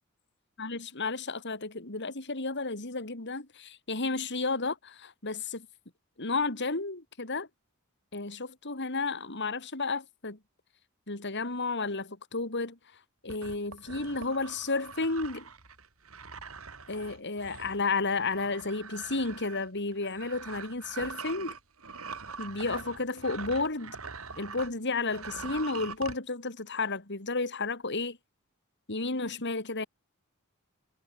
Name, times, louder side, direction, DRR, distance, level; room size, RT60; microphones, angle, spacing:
voice 1, 0.6-5.7 6.2-7.5 8.1-10.4 11.1-12.8 13.2-15.5 16.9-21.5 22.4-24.0 24.4-28.2 28.9-29.9, left 3 dB, 55° left, 3.4 m, -32 dB
sound 1, 13.3-24.7 25.0-26.2, right 5 dB, 70° right, 4.1 m, -43 dB
head